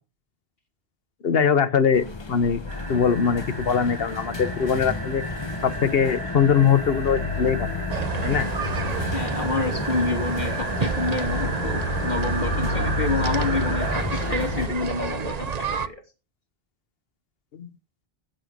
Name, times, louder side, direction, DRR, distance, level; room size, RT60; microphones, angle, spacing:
voice 1, 1.2-2.6 2.9-5.2 5.6-7.7 8.2-8.5 17.5-17.7, left 7 dB, 65° left, 1.2 m, -22 dB
sound 1, 1.9-14.7, left 3 dB, 25° left, 1.0 m, -31 dB
sound 2, 2.7-14.0, right 2 dB, 80° right, 3.6 m, -34 dB
sound 3, 7.9-15.9, right 6 dB, 45° right, 0.8 m, -30 dB
voice 2, 9.1-16.0, left 2 dB, 50° left, 3.2 m, -28 dB
11.0 x 8.7 x 5.2 m
omnidirectional pair, 1.1 m